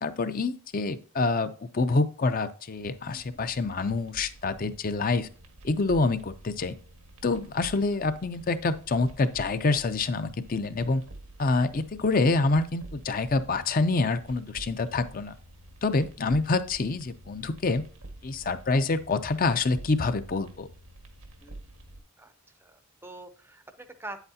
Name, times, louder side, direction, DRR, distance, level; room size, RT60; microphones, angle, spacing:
voice 1, 0.0-5.3 5.6-6.7 7.2-11.0 11.4-15.3 15.8-17.8 18.2-20.7, left 3 dB, 40° left, 10 dB, 0.5 m, -26 dB
sound 1, 2.8-22.0, right 1 dB, 90° right, 1.6 m, -49 dB
voice 2, 22.6-24.2, right 2 dB, 10° right, 9 dB, 0.6 m, -44 dB
8.8 x 8.0 x 2.7 m, 0.40 s
head